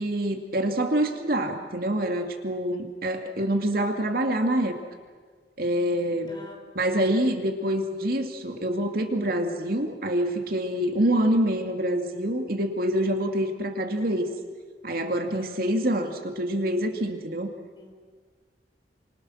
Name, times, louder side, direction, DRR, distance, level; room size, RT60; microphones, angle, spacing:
voice 1, 0.0-4.8 5.6-6.4 6.7-14.3 14.8-17.5, right 1 dB, 55° right, 4 dB, 2.5 m, -26 dB
voice 2, 6.3-7.1 15.3-15.7 17.7-17.9, left 2 dB, 25° left, 1 dB, 5.4 m, -46 dB
29.5 x 26.5 x 6.5 m, 1.5 s
head